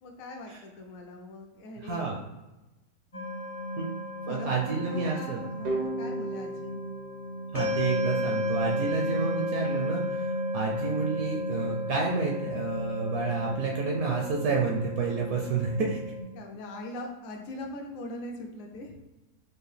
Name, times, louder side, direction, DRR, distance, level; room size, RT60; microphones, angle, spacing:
voice 1, 0.0-2.1 4.3-6.8 16.3-18.9, left 1 dB, 65° left, 2 dB, 1.0 m, -41 dB
voice 2, 1.8-2.2 3.8-3.9 4.3-5.4 7.5-16.0, right 4 dB, 75° right, 0 dB, 1.0 m, -30 dB
sound 1, 3.1-16.2, left 1 dB, 45° left, 0.4 m, -33 dB
sound 2, 5.6-8.4, right 2 dB, 90° right, 1.4 m, -36 dB
4.6 x 2.5 x 3.2 m, 1.0 s
omnidirectional pair, 1.6 m